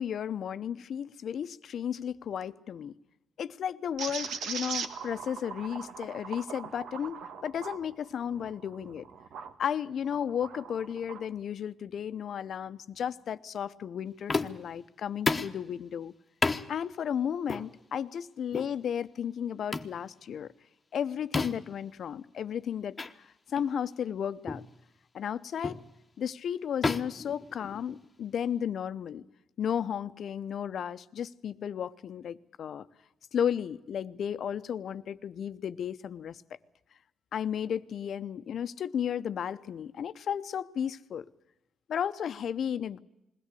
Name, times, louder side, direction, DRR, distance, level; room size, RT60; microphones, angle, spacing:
voice 1, 0.0-2.9 3.4-9.1 9.6-16.1 16.7-20.5 20.9-24.6 25.1-25.8 26.2-29.2 29.6-32.9 33.3-36.4 37.3-41.3 41.9-43.0, left 8 dB, 65° left, 13 dB, 0.8 m, -34 dB
sound 1, 4.0-9.5 10.0-11.3, right 6 dB, 85° right, 1.6 m, -40 dB
sound 2, 14.3-14.7 15.3-15.6 16.4-16.7 17.5-17.7 18.5-18.7 19.7-20.0 21.3-21.7 23.0-23.1 23.6-23.7 24.5-24.7 25.6-25.9 26.8-28.0, left 3 dB, 25° left, 1.1 m, -31 dB
21.0 x 17.0 x 8.4 m, 0.91 s
cardioid pair, 105°, 0 cm